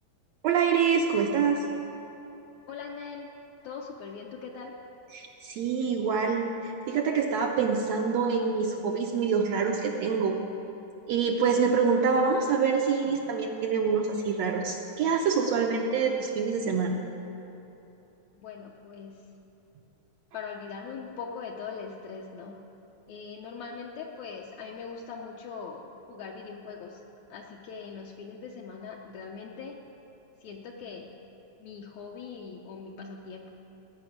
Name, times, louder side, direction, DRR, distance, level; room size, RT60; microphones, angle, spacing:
voice 1, 0.4-1.6 5.1-10.4 11.1-17.0, right 5 dB, 75° right, 1 dB, 1.6 m, -26 dB
voice 2, 2.7-3.3 3.6-4.8 18.4-19.2 20.3-22.6 23.1-27.0 27.3-29.8 30.4-31.1 31.6-33.5, left 5 dB, 75° left, -1 dB, 1.9 m, -41 dB
18.0 x 5.9 x 9.3 m, 3.0 s
omnidirectional pair, 3.7 m